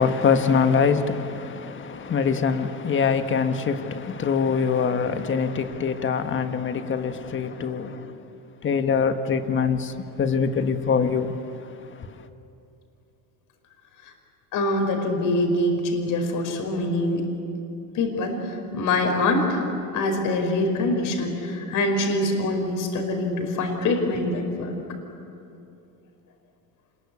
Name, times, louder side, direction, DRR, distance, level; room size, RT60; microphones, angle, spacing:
voice 1, 0.0-8.1 8.6-9.9 10.2-11.3, left 6 dB, 30° left, 1.5 m, -23 dB
voice 2, 14.5-17.3 17.9-19.6 19.9-24.8, left 2 dB, 55° left, 5.0 m, -24 dB
26.5 x 22.0 x 8.6 m
supercardioid pair, 115°, 37 cm